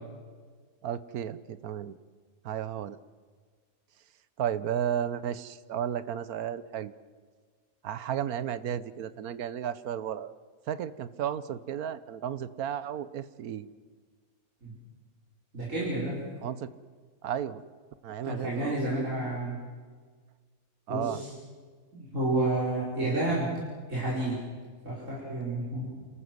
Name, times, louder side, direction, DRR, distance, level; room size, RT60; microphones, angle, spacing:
voice 1, 0.8-1.9 2.4-3.0 4.4-6.9 7.8-10.3 10.7-13.7 16.4-16.7 17.2-17.6 18.0-18.9 20.9-21.2, right 9 dB, 75° right, 15 dB, 1.3 m, -33 dB
voice 2, 15.5-16.2 18.2-19.6 20.9-21.3 21.9-23.5 23.9-24.4 24.8-25.9, right 2 dB, 55° right, -7 dB, 5.6 m, -30 dB
29.0 x 14.5 x 7.9 m, 1.6 s
omnidirectional pair, 1.6 m